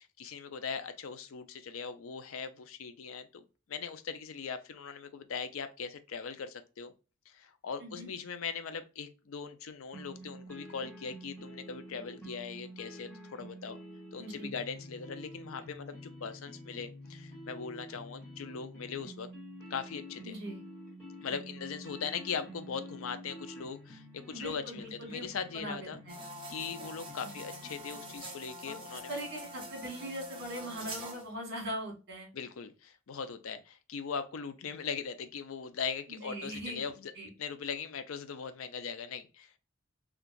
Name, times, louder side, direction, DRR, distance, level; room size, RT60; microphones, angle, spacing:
voice 1, 0.2-3.4 3.7-6.9 7.3-13.8 14.1-19.3 19.7-20.3 21.2-26.0 26.5-29.2 32.3-37.1 37.4-39.6, left 6 dB, 75° left, 0.5 m, -40 dB
sound 1, 9.9-28.2, equal, 5° left, 1.7 m, -48 dB
voice 2, 14.2-14.5 20.2-20.6 24.3-25.3 25.5-26.2 27.2-27.3 28.6-32.3 36.1-36.8 37.1-37.3, right 1 dB, 50° right, 1.6 m, -41 dB
sound 2, 26.1-31.3, equal, 25° right, 0.8 m, -45 dB
3.8 x 2.3 x 2.5 m
head